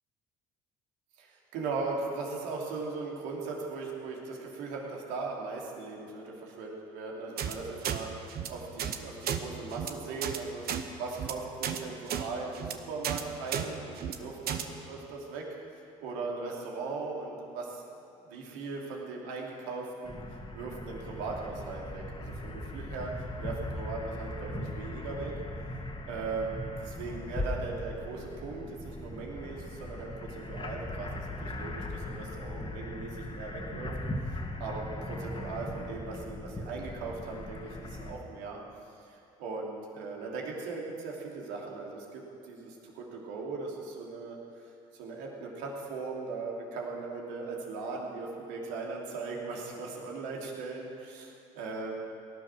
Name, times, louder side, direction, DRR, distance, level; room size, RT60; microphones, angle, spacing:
voice 1, 1.2-15.5 16.0-17.8 18.2-20.2 20.5-23.1 23.4-25.4 26.0-31.1 31.4-33.9 34.3-38.6 39.0-51.9, right 4 dB, 80° right, -2 dB, 3.0 m, -39 dB
sound 1, 7.4-7.5 7.8-8.0 8.3-8.5 8.8-9.0 9.2-9.4 9.7-9.9 10.2-10.4 10.7-10.8 11.1-11.3 11.6-11.8 12.1-12.2 12.5-12.7 13.0-13.2 13.5-13.7 14.0-14.2 14.5-14.6, right 9 dB, 60° right, 1.2 m, -32 dB
sound 2, 20.0-38.1, left 1 dB, 30° left, 2.2 m, -39 dB
18.0 x 11.5 x 6.3 m, 2.6 s
hypercardioid pair, 65°, 18 cm